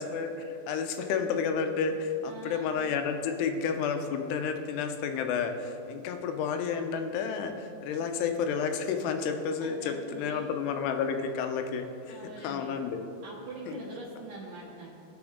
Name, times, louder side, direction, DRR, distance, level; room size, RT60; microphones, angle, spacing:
voice 1, 0.0-13.0 13.7-13.8, left 6 dB, 85° left, 6 dB, 2.8 m, -31 dB
voice 2, 2.2-2.7 9.6-10.5 12.1-12.8 13.2-14.9, right 2 dB, 65° right, -7 dB, 2.4 m, -43 dB
17.5 x 6.1 x 3.6 m, 2.6 s
omnidirectional pair, 4.7 m